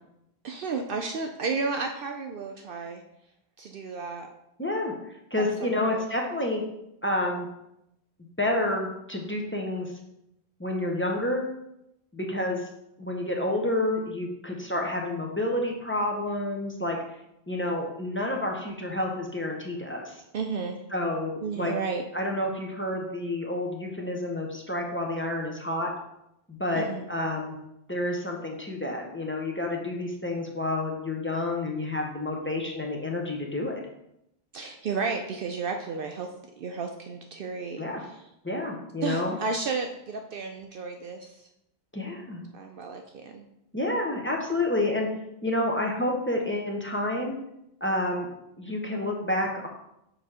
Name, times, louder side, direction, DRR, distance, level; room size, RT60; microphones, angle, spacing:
voice 1, 0.4-3.0 3.6-4.3 5.4-6.0 20.3-20.8 21.4-22.0 26.8-27.1 34.5-38.1 39.0-41.4 42.5-43.5, right 4 dB, 65° right, 4 dB, 0.7 m, -33 dB
voice 2, 4.6-4.9 5.3-6.7 7.0-7.5 8.4-9.9 10.6-11.5 12.1-12.6 13.0-17.0 17.5-20.2 20.9-21.7 22.1-25.9 26.5-27.6 27.9-33.7 37.8-38.0 38.4-39.4 41.9-42.4 43.7-45.1 45.4-47.4 47.8-48.3 48.6-49.7, left 1 dB, 15° left, 0 dB, 0.7 m, -29 dB
6.7 x 3.0 x 4.8 m, 0.82 s
omnidirectional pair, 1.1 m